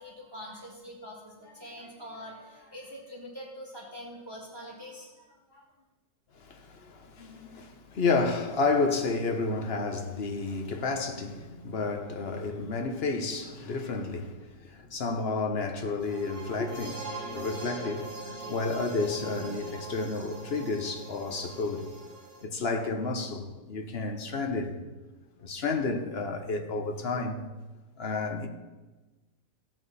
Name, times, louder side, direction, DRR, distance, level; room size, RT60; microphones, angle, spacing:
voice 1, 0.0-5.6, equal, 15° right, 1.9 m, -44 dB
voice 2, 6.3-21.9 22.4-24.8 25.4-27.4 28.0-28.5, left 3 dB, 40° left, 1.1 m, -31 dB
sound 1, 16.0-22.4, right 3 dB, 60° right, 2.4 m, -42 dB
16.0 x 7.6 x 4.1 m
omnidirectional pair, 1.8 m